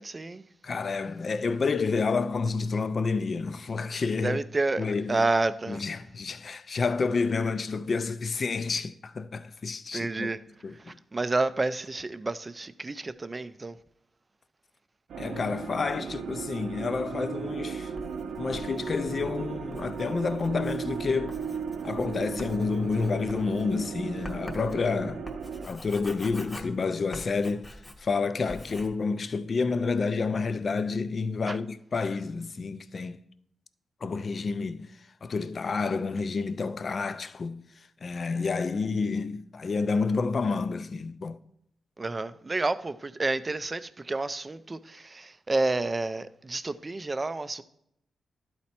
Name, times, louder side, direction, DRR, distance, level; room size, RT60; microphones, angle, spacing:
voice 1, 0.0-0.4 4.2-5.8 9.9-10.4 11.1-13.7 31.5-31.6 42.0-47.6, right 2 dB, 25° right, 0.4 m, -29 dB
voice 2, 0.6-4.4 4.8-5.3 5.7-10.3 10.6-11.0 15.2-17.9 18.4-21.4 21.8-25.3 25.6-27.7 28.0-33.2 34.0-34.9 35.2-37.6 38.0-41.4, left 4 dB, 40° left, 0.4 m, -29 dB
sound 1, 15.1-25.7, right 6 dB, 90° right, 0.6 m, -36 dB
Writing, 18.0-28.2 28.5-28.9, left 1 dB, 15° left, 0.8 m, -45 dB
11.5 x 4.2 x 4.3 m
wide cardioid pair, 130°, 0 cm